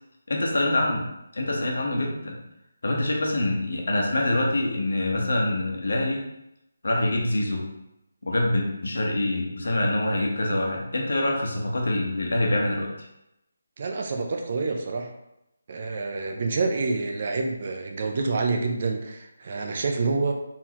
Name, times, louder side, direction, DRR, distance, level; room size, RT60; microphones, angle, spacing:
voice 1, 0.3-1.0 1.3-2.4 2.8-6.2 6.8-7.7 8.2-13.1, left 1 dB, 75° left, -1 dB, 1.2 m, -25 dB
voice 2, 13.8-15.1 15.7-20.3, right 3 dB, 45° right, 3 dB, 0.7 m, -27 dB
4.3 x 3.8 x 3.0 m, 0.86 s
figure-of-eight pair, 160°, 0 cm